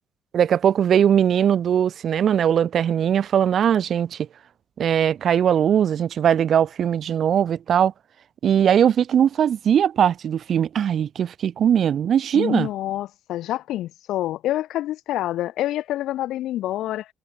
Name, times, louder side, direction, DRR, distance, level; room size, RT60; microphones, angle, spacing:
voice 1, 0.3-4.3 4.8-7.9 8.4-12.7, right 9 dB, 60° right, 4.6 m, -20 dB
voice 2, 12.3-17.1, left 14 dB, 85° left, 7.9 m, -27 dB
cardioid pair, 100°, 0 cm